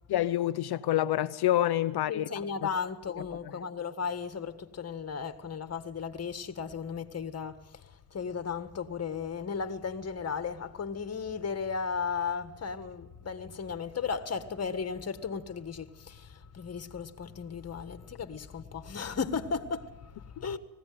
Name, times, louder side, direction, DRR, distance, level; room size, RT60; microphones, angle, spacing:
voice 1, 0.1-2.3 3.4-3.5, left 13 dB, 50° left, 0.8 m, -27 dB
voice 2, 2.1-7.6 8.1-20.6, left 6 dB, 30° left, 1.6 m, -35 dB
19.5 x 16.0 x 9.4 m
supercardioid pair, 90°, 49 cm